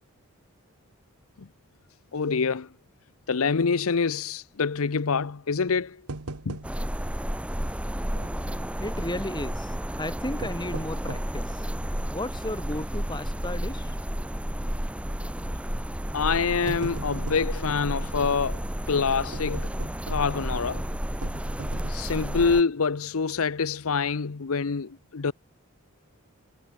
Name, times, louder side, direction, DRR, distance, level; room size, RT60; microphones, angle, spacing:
voice 1, 2.1-2.7 3.3-6.0 6.5-6.6 16.1-18.6 18.9-19.7 20.1-20.9 21.9-25.3, left 5 dB, 75° left, 0.7 m, -26 dB
sound 1, 6.1-7.1 7.3-7.4 8.2-8.8 10.2-11.4 12.0-12.1 12.7-13.0 13.3-13.4 14.5-14.8 15.7-15.9 16.3-17.6 19.3-20.5 21.2-22.2 22.7-22.9 23.2-23.3, right 2 dB, 90° right, 1.6 m, -40 dB
sound 2, 6.6-22.6, equal, 5° right, 0.8 m, -32 dB
voice 2, 8.8-11.7 12.1-14.0, left 1 dB, 20° left, 2.9 m, -34 dB
head